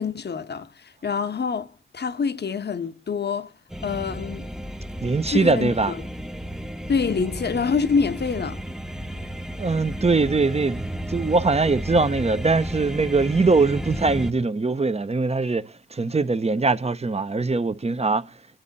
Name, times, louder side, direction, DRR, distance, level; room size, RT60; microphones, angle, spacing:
voice 1, 0.0-3.5 3.8-4.5 5.2-6.0 6.9-8.6, left 5 dB, 60° left, 1.2 m, -26 dB
sound 1, 3.7-14.3, equal, 5° right, 0.8 m, -33 dB
voice 2, 5.0-6.0 9.6-18.3, right 3 dB, 30° right, 1.0 m, -22 dB
28.5 x 10.5 x 4.2 m
cardioid pair, 65°, 20 cm